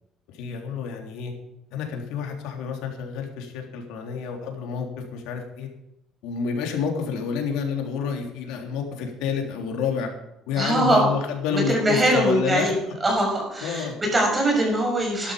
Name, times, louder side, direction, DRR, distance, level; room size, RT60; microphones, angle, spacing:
voice 1, 0.3-1.3 1.7-5.7 6.2-10.1 10.5-12.7 13.6-13.9, left 6 dB, 85° left, 2 dB, 3.4 m, -29 dB
voice 2, 10.6-11.1 11.5-15.3, right 1 dB, 20° right, 1 dB, 6.2 m, -22 dB
13.0 x 12.0 x 5.1 m, 0.88 s
cardioid pair, 115°, 0 cm